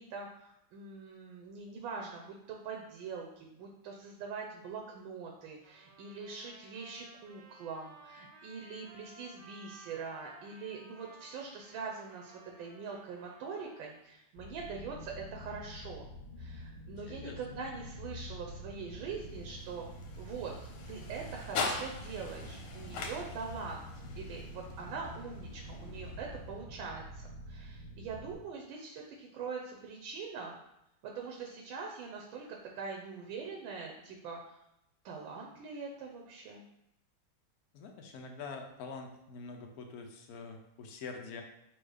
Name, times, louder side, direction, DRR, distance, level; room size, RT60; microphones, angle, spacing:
voice 1, 0.0-16.1 16.4-19.9 20.2-20.5 20.9-23.8 24.2-30.6 31.0-34.6 35.0-36.6, right 5 dB, 75° right, 0 dB, 1.4 m, -43 dB
Trumpet, 5.6-13.9, right 2 dB, 50° right, 0.9 m, -57 dB
sound 1, 14.4-28.3, equal, 10° left, 1.2 m, -47 dB
voice 2, 16.9-17.6 37.7-41.4, left 4 dB, 75° left, 3 dB, 0.8 m, -45 dB
sound 2, 18.5-26.8, left 4 dB, 90° left, 1.6 m, -43 dB
4.5 x 2.4 x 4.8 m, 0.84 s
omnidirectional pair, 2.2 m